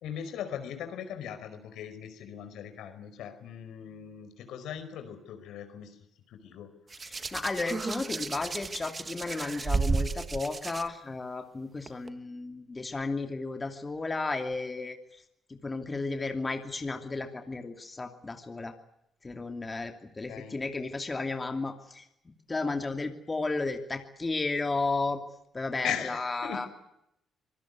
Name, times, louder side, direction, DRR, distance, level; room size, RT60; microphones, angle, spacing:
voice 1, 0.0-6.0 6.3-6.7 20.3-20.6 25.8-26.7, left 9 dB, 85° left, 8 dB, 4.8 m, -39 dB
Hands, 6.9-10.8 11.9-12.1, right 4 dB, 30° right, 1.4 m, -32 dB
voice 2, 7.0-15.0 15.5-18.7 19.2-22.1 22.5-25.2 25.5-26.7, left 3 dB, 25° left, 5 dB, 2.8 m, -33 dB
25.5 x 19.0 x 9.5 m, 0.81 s
cardioid pair, 90°, 0 cm